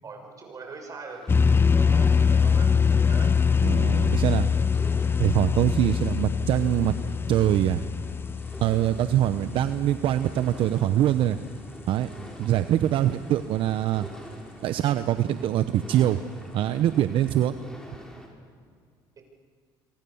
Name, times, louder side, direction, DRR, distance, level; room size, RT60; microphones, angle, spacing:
voice 1, 0.0-1.2 1.7-3.4 19.2-19.3, right 4 dB, 35° right, 4 dB, 6.6 m, -42 dB
sound 1, 1.1-18.3, equal, 5° left, 6.3 m, -47 dB
sound 2, 1.3-10.8, left 6 dB, 25° left, 0.8 m, -23 dB
voice 2, 3.6-4.5 5.2-6.9 7.3-7.8 8.6-11.4 11.9-12.1 12.4-14.1 14.6-16.2 16.5-17.5, right 12 dB, 60° right, 10 dB, 0.9 m, -23 dB
26.5 x 24.5 x 7.1 m, 2.1 s
supercardioid pair, 95°, 10 cm